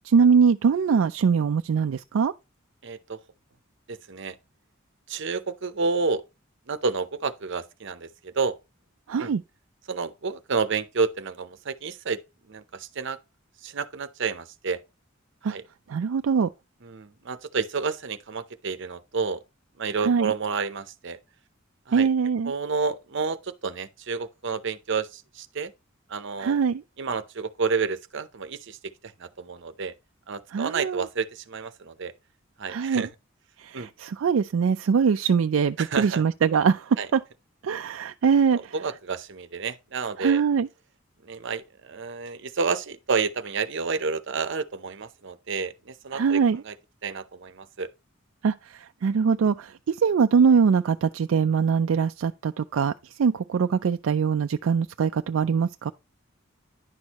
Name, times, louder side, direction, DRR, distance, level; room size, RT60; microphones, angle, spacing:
voice 1, 0.1-2.3 9.1-9.4 15.4-15.5 15.9-16.5 20.0-20.3 21.9-22.5 26.4-26.8 30.5-31.0 32.7-33.0 33.6-37.2 37.6-38.6 40.2-40.7 46.1-46.6 48.4-48.5 49.0-52.9 53.2-55.9, right 6 dB, 80° right, 0.4 m, -22 dB
voice 2, 2.8-3.2 3.9-4.4 5.1-6.2 6.7-8.6 9.2-9.3 9.9-12.2 12.5-13.2 13.6-14.8 15.4-15.6 16.8-19.4 19.8-21.2 21.9-22.1 22.4-25.7 26.1-26.6 27.0-28.8 29.0-29.9 30.3-32.1 32.6-33.1 33.7-33.9 35.8-36.2 37.0-37.1 38.5-40.4 41.2-46.8 47.0-47.9, right 5 dB, 65° right, 0.8 m, -30 dB
10.5 x 6.3 x 3.0 m
head